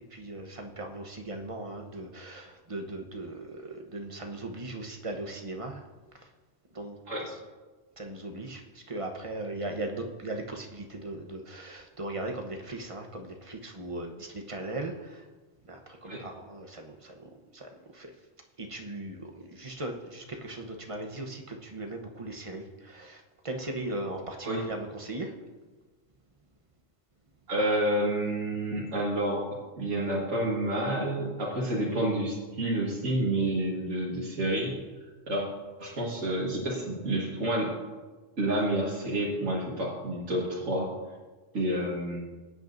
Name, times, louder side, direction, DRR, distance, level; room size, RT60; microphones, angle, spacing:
voice 1, 0.1-5.8 6.7-7.0 8.0-15.2 15.6-18.1 18.6-25.3, right 2 dB, 30° right, 3 dB, 1.0 m, -38 dB
voice 2, 27.5-34.9 35.3-35.5 35.8-37.8 38.4-40.9 41.5-42.2, right 1 dB, 85° right, -5 dB, 2.1 m, -29 dB
19.5 x 8.8 x 2.6 m, 1.3 s
omnidirectional pair, 1.3 m